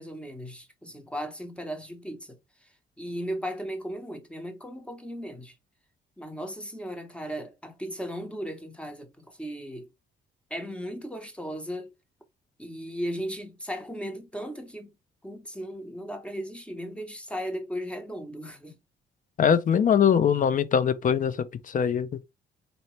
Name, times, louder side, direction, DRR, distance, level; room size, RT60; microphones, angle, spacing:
voice 1, 0.0-5.5 6.2-9.9 10.5-11.9 12.6-15.0 15.2-18.8, equal, 5° left, 1.1 m, -36 dB
voice 2, 19.4-22.2, left 7 dB, 40° left, 0.5 m, -22 dB
4.1 x 2.9 x 3.2 m
cardioid pair, 90°, 20 cm